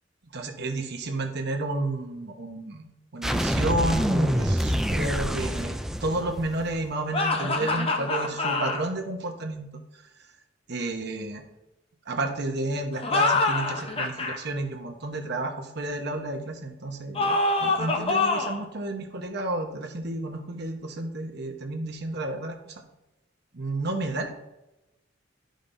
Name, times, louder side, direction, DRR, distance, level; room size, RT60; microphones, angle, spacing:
voice 1, 0.3-2.8 3.1-10.0 10.7-11.4 12.1-22.7 23.5-24.3, right 2 dB, 60° right, 4 dB, 1.0 m, -31 dB
sound 1, 3.2-6.9, equal, ahead, 0.3 m, -26 dB
sound 2, 7.1-8.8 12.9-14.4 17.1-18.6, left 3 dB, 30° left, 0.7 m, -25 dB
11.5 x 5.1 x 2.6 m, 0.95 s
head